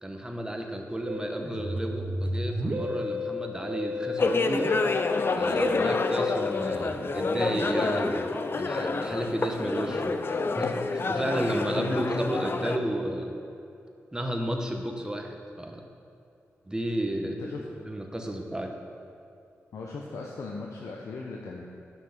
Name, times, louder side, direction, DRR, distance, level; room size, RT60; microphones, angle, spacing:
voice 1, 0.0-4.7 5.3-13.3 14.1-15.8 16.7-17.4 17.8-18.7, right 1 dB, 15° right, 3 dB, 1.2 m, -32 dB
Musical instrument, 1.1-7.8, left 2 dB, 35° right, 1.1 m, -33 dB
sound 1, 4.2-12.8, left 3 dB, 45° left, 0.6 m, -28 dB
voice 2, 17.2-17.7 19.7-21.6, left 4 dB, 75° left, -2 dB, 0.8 m, -38 dB
9.4 x 5.9 x 5.9 m, 2.5 s
cardioid pair, 55°, 5 cm